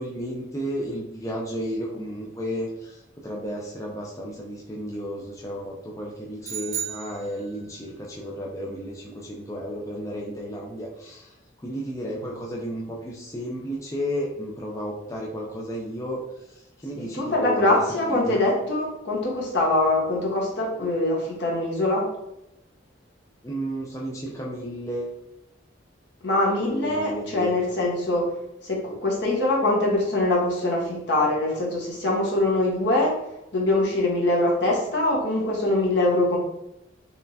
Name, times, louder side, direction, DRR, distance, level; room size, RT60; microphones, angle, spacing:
voice 1, 0.0-16.2 16.5-17.8 18.1-18.4 23.4-25.2 26.6-27.5, equal, 15° left, -3 dB, 0.4 m, -33 dB
sound 1, 6.4-7.9, right 9 dB, 35° right, 0.8 m, -34 dB
voice 2, 17.0-22.1 26.2-28.2 28.6-33.2 33.5-36.4, left 2 dB, 60° left, -3 dB, 1.2 m, -23 dB
4.3 x 3.2 x 2.7 m, 0.86 s
head